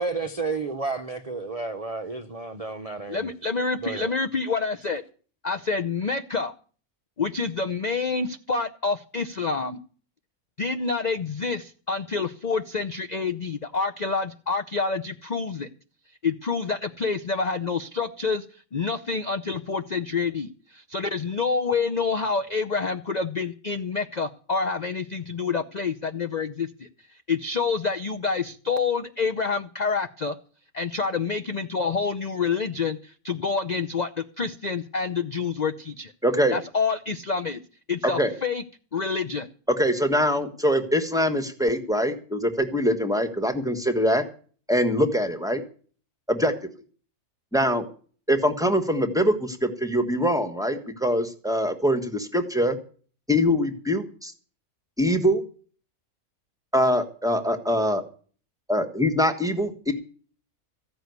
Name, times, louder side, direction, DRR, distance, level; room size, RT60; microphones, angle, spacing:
voice 1, 0.0-3.3 3.8-4.1, right 3 dB, 35° right, 0.7 m, -31 dB
voice 2, 3.1-5.0 5.4-6.5 7.2-9.8 10.6-15.7 16.2-18.4 18.7-26.9 27.3-30.3 30.7-36.1 36.5-37.6 37.9-38.6 38.9-39.5, left 4 dB, 40° left, 0.6 m, -27 dB
voice 3, 36.2-36.6 38.0-38.3 39.8-44.2 44.7-45.6 46.3-46.5 47.5-47.9 48.3-52.8 53.3-54.3 55.0-55.4 56.7-58.0 58.7-59.9, equal, ahead, 1.3 m, -23 dB
15.0 x 6.3 x 9.4 m
omnidirectional pair, 1.6 m